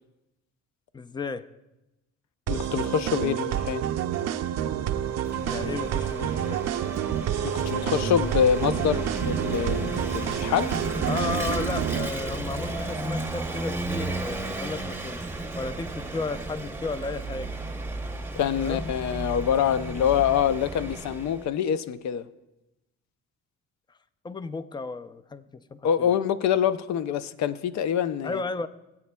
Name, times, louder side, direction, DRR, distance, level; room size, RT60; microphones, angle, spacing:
voice 1, 0.9-1.5 5.3-6.6 11.1-17.6 18.6-18.9 24.2-26.1 28.2-28.7, left 4 dB, 15° left, 0.4 m, -34 dB
voice 2, 2.5-3.9 7.4-10.8 18.4-22.3 25.8-28.4, left 8 dB, 65° left, 0.6 m, -25 dB
sound 1, 2.5-12.1, right 10 dB, 60° right, 0.5 m, -29 dB
Vehicle / Engine, 4.9-21.5, right 2 dB, 5° right, 0.8 m, -34 dB
19.0 x 8.4 x 2.3 m
cardioid pair, 95°, 30 cm